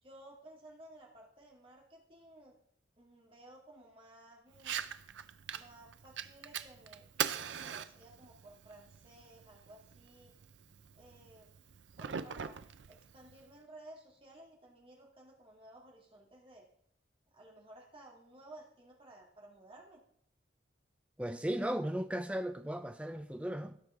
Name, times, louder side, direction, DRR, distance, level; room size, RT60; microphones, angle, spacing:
voice 1, 0.0-2.6 3.0-4.9 5.5-10.4 11.0-11.5 12.0-12.6 12.9-16.6 17.3-20.0, right 1 dB, 30° right, 2.2 m, -56 dB
Fire, 4.5-13.5, right 8 dB, 85° right, 0.5 m, -43 dB
voice 2, 21.2-23.8, right 1 dB, 5° right, 0.5 m, -36 dB
16.5 x 6.2 x 3.7 m
head